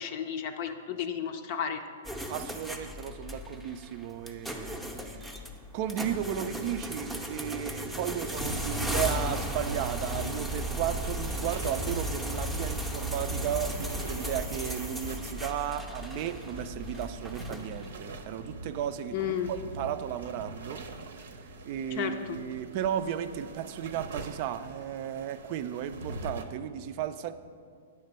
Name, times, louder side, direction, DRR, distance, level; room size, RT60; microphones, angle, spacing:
voice 1, 0.0-1.8 19.1-19.5 22.0-22.4, left 9 dB, 50° left, 6 dB, 0.5 m, -32 dB
sound 1, 2.0-18.0, equal, ahead, 0.6 m, -36 dB
voice 2, 2.3-5.3 5.7-20.8 21.2-27.3, right 10 dB, 45° right, 11 dB, 0.4 m, -34 dB
sound 2, 8.0-26.5, right 2 dB, 75° right, 0.7 m, -44 dB
9.4 x 3.3 x 6.7 m, 2.1 s
hypercardioid pair, 120°, 0 cm